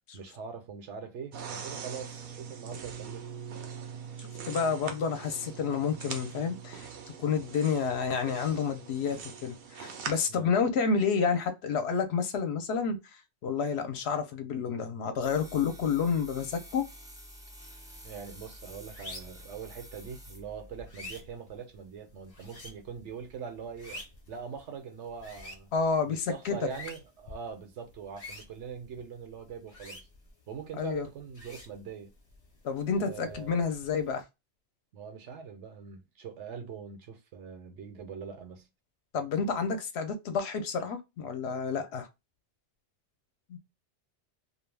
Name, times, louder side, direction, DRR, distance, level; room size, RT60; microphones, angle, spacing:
voice 1, 0.1-3.3 10.3-10.5 18.0-24.0 24.3-25.7 26.0-30.1 30.5-32.1 33.0-33.5 34.9-38.7, right 6 dB, 80° right, 1.0 m, -42 dB
sound 1, 1.3-10.1, right 6 dB, 60° right, 0.7 m, -42 dB
voice 2, 4.2-6.9 7.2-16.8 25.7-26.7 30.8-31.1 32.6-34.2 39.1-42.1 43.5-43.6, left 5 dB, 70° left, 0.8 m, -30 dB
sound 2, 15.2-20.9, equal, 5° right, 0.3 m, -49 dB
sound 3, 17.9-34.2, left 1 dB, 35° left, 0.7 m, -50 dB
2.3 x 2.2 x 3.2 m
omnidirectional pair, 1.2 m